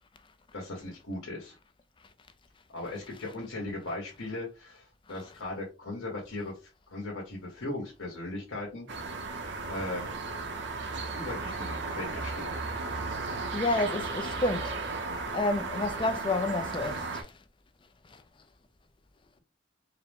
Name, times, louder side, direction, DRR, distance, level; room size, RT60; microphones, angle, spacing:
voice 1, 0.5-1.6 2.7-8.9 9.7-10.0 11.1-12.5, left 2 dB, 80° left, 1.5 m, -38 dB
sound 1, 8.9-17.2, right 3 dB, 55° right, 0.7 m, -35 dB
voice 2, 13.3-14.8 15.3-17.4 18.1-18.2, left 2 dB, 25° left, 0.3 m, -30 dB
4.7 x 2.1 x 3.6 m
head